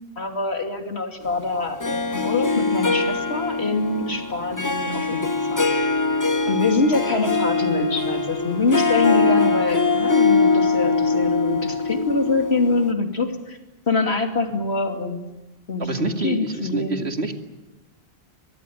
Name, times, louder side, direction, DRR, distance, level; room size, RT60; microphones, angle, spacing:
voice 1, 0.2-5.2 5.5-5.7 6.5-13.6 13.9-15.2 15.7-17.0, left 3 dB, 80° left, 5 dB, 3.1 m, -24 dB
Harp, 1.8-12.9, left 3 dB, 20° left, 1.0 m, -22 dB
voice 2, 15.8-17.3, right 3 dB, 85° right, 5 dB, 2.6 m, -27 dB
24.0 x 21.0 x 9.4 m, 1.0 s
omnidirectional pair, 1.1 m